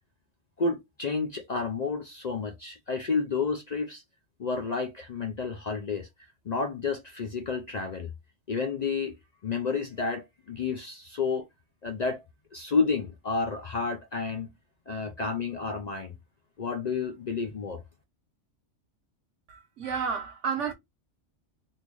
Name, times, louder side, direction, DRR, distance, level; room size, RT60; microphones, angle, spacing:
voice 1, 0.6-4.0 4.4-6.1 6.5-8.1 8.5-9.2 9.4-11.5 11.8-12.2 12.5-14.5 14.9-16.1 16.6-17.8, left 4 dB, 55° left, 0.5 m, -30 dB
voice 2, 19.5-20.7, right 6 dB, 80° right, 1.3 m, -31 dB
3.7 x 2.5 x 3.1 m
omnidirectional pair, 1.2 m